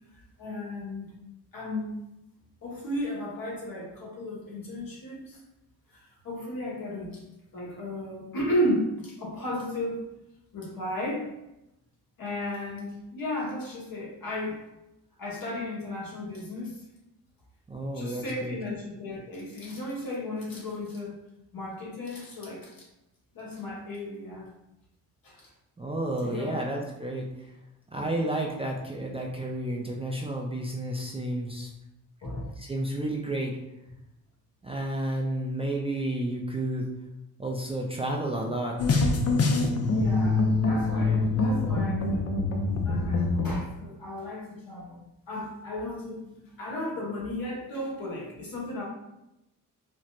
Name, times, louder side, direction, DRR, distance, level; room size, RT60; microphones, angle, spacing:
voice 1, 0.1-1.1 1.5-2.0 2.6-5.4 5.9-7.2 7.5-10.1 10.5-11.3 12.2-14.7 15.2-16.8 17.9-21.2 21.5-22.9 23.3-24.5 25.2-25.5 26.2-26.5 28.0-28.3 32.2-32.5 39.8-42.3 42.8-48.8, left 1 dB, 60° left, -4 dB, 1.4 m, -34 dB
voice 2, 17.7-18.6 25.8-27.5 27.9-31.7 32.6-33.5 34.6-36.9 37.4-38.7, right 1 dB, 15° right, -2 dB, 0.4 m, -31 dB
sound 1, 38.8-43.6, left 3 dB, 40° left, 0.5 m, -25 dB
4.2 x 2.0 x 2.5 m, 0.89 s
cardioid pair, 70°, 39 cm